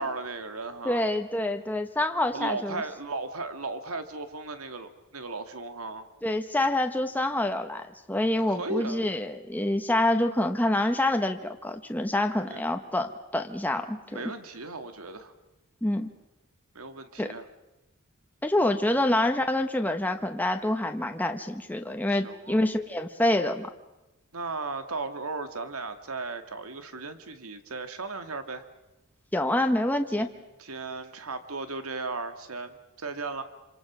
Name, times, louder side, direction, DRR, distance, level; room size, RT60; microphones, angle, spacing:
voice 1, 0.0-1.1 2.3-6.1 8.5-9.0 12.5-12.6 14.1-15.3 16.7-17.5 22.1-22.6 24.3-28.6 30.2-30.3 30.6-33.4, right 3 dB, 85° right, 8 dB, 2.0 m, -36 dB
voice 2, 0.8-2.8 6.2-7.8 8.1-14.0 15.8-16.1 17.2-17.3 18.4-23.7 29.3-30.3, left 1 dB, 10° left, 6 dB, 1.0 m, -26 dB
27.5 x 26.5 x 6.1 m, 0.98 s
head